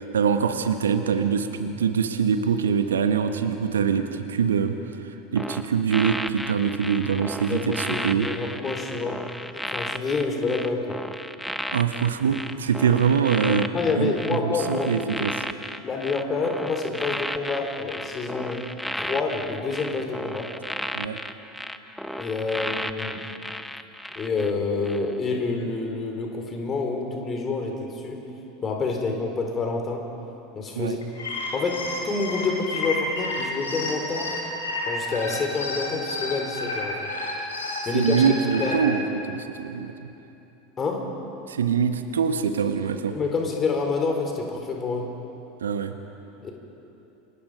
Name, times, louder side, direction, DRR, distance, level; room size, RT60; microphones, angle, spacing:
voice 1, 0.0-8.3 11.7-15.4 20.9-21.2 30.7-31.0 37.9-40.1 41.5-43.2 45.6-46.0, right 7 dB, 70° right, 8 dB, 1.3 m, -24 dB
sound 1, 5.4-24.5 24.8-25.1, equal, ahead, 1.0 m, -34 dB
voice 2, 7.5-11.0 13.7-15.3 15.8-18.6 18.9-20.5 22.2-23.3 24.1-28.3 28.6-30.0 30.5-31.0 31.5-34.4 34.9-37.1 37.8-38.1 38.6-38.8 40.8-41.1 43.1-45.2 46.4-46.5, left 4 dB, 25° left, 2 dB, 4.6 m, -28 dB
sound 2, 31.0-38.8, left 2 dB, 70° left, 5.4 m, -31 dB
29.0 x 26.5 x 5.3 m, 2.9 s
figure-of-eight pair, 80°, 0 cm